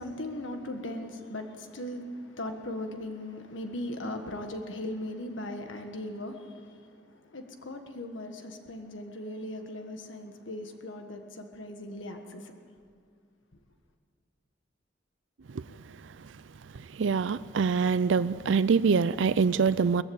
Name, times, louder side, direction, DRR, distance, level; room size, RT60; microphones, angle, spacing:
voice 1, 0.0-12.6, left 1 dB, 85° left, 1.6 m, -38 dB
voice 2, 16.7-20.0, right 5 dB, 75° right, 0.5 m, -25 dB
20.5 x 15.0 x 8.7 m
head